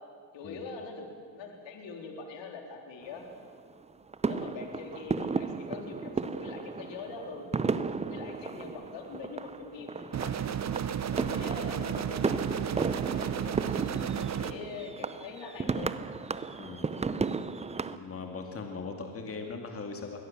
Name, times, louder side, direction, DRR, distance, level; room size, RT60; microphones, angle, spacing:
voice 1, 0.3-1.1 1.3-3.3 4.2-7.5 8.1-10.5 11.1-12.7 13.1-16.0, left 4 dB, 60° left, 2 dB, 3.8 m, -43 dB
sound 1, 3.0-3.7 4.1-18.0, right 4 dB, 15° right, 0.7 m, -34 dB
sound 2, 10.1-14.5, right 9 dB, 35° right, 1.0 m, -33 dB
voice 2, 16.6-17.0 17.9-20.2, left 4 dB, 25° left, 3 dB, 2.4 m, -40 dB
22.5 x 17.5 x 7.3 m, 2.2 s
supercardioid pair, 105°, 50 cm